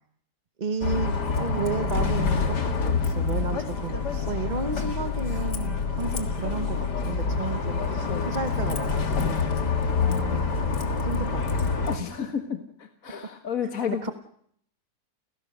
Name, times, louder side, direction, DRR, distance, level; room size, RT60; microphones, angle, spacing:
voice 1, 0.6-9.7 10.2-10.5 11.0-11.9 13.9-14.1, right 4 dB, 35° right, 7 dB, 0.9 m, -33 dB
Bus, 0.8-12.0, left 5 dB, 85° left, 2.4 m, -27 dB
voice 2, 4.2-4.6 6.0-6.3 8.0-8.3 10.0-10.5 11.9-14.1, left 8 dB, 55° left, 5 dB, 1.8 m, -32 dB
30.0 x 17.0 x 6.5 m, 0.67 s
omnidirectional pair, 1.8 m